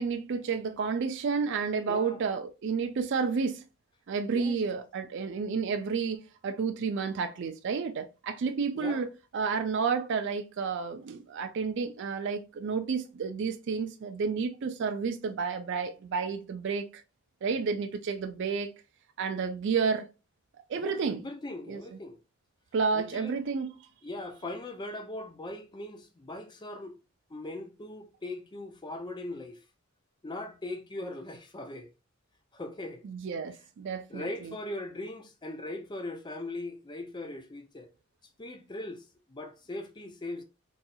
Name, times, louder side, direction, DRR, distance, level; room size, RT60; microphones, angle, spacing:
voice 1, 0.0-3.6 4.1-9.1 9.3-17.0 17.4-18.7 19.2-20.1 20.7-21.2 21.7-21.8 22.7-23.8 33.0-34.5, right 5 dB, 55° right, 0.3 m, -31 dB
voice 2, 1.9-2.2 4.3-4.6 8.7-9.0 20.7-22.2 22.9-23.4 24.0-27.0 27.3-29.6 30.2-31.9 32.5-33.0 34.1-37.9 38.4-40.4, left 2 dB, 20° left, 0.4 m, -40 dB
4.1 x 2.6 x 2.3 m
head